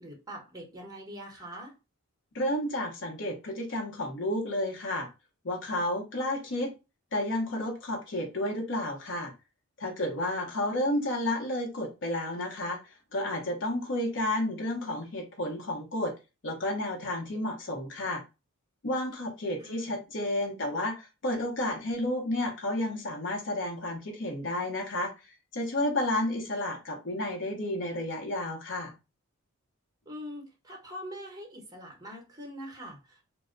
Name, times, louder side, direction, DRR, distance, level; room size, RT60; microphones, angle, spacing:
voice 1, 0.0-1.7 10.4-10.5 19.6-20.0 30.1-33.3, equal, 15° right, 0.9 m, -43 dB
voice 2, 2.3-5.1 5.4-6.7 7.1-9.3 9.8-12.8 13.1-16.1 16.4-18.2 18.8-25.1 25.5-28.9, left 1 dB, 60° left, 0.8 m, -31 dB
2.1 x 2.1 x 3.6 m
head